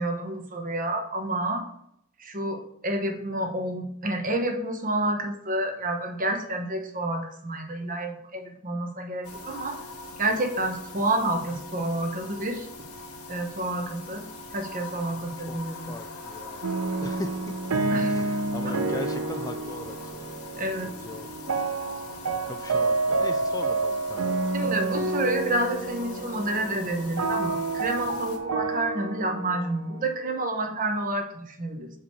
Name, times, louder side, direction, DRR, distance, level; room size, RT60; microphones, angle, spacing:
voice 1, 0.0-1.7 2.2-9.8 10.2-12.7 13.3-14.2 14.5-15.9 17.9-18.3 18.6-18.8 20.6-20.9 24.5-31.9, right 1 dB, 40° right, 4 dB, 1.0 m, -29 dB
sound 1, 9.2-28.4, left 2 dB, 85° left, 1.1 m, -42 dB
voice 2, 15.4-17.5 18.0-21.3 22.5-24.4, left 2 dB, 15° left, 7 dB, 0.3 m, -40 dB
sound 2, 16.6-30.6, right 3 dB, 85° right, 0.7 m, -29 dB
6.9 x 5.0 x 4.6 m, 0.74 s
head